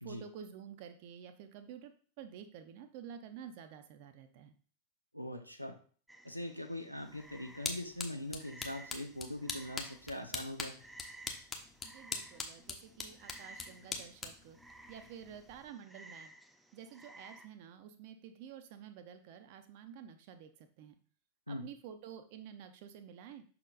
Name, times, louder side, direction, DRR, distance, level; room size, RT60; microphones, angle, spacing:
voice 1, 0.0-1.9 2.2-4.5 11.8-14.6 14.9-16.3 16.7-21.0 21.5-23.4, right 8 dB, 50° right, 8 dB, 0.7 m, -50 dB
voice 2, 5.1-5.8 6.2-10.8 21.5-21.7, left 1 dB, 90° right, 5 dB, 0.7 m, -42 dB
Frog, 6.1-17.5, right 2 dB, 5° right, 0.6 m, -57 dB
sound 1, 7.0-15.7, left 4 dB, 20° left, 1.0 m, -44 dB
6.1 x 4.3 x 3.9 m, 0.43 s
figure-of-eight pair, 90°, 0 cm